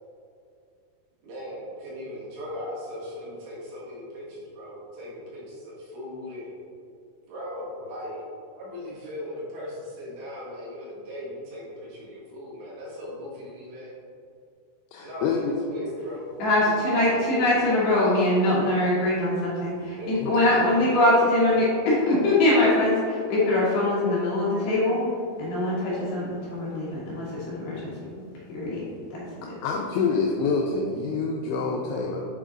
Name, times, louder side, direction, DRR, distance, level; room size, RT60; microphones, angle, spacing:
voice 1, 1.2-6.5 7.3-13.9 15.0-18.4 20.0-20.5, left 1 dB, 70° right, -7 dB, 3.8 m, -38 dB
voice 2, 14.9-15.6 20.2-20.3 29.4-32.3, left 4 dB, 85° left, 0 dB, 2.5 m, -27 dB
voice 3, 16.4-25.0 25.4-28.1 28.5-28.8 29.1-29.5, left 1 dB, 65° left, -8 dB, 2.8 m, -23 dB
8.1 x 3.8 x 3.7 m, 2.4 s
omnidirectional pair, 5.5 m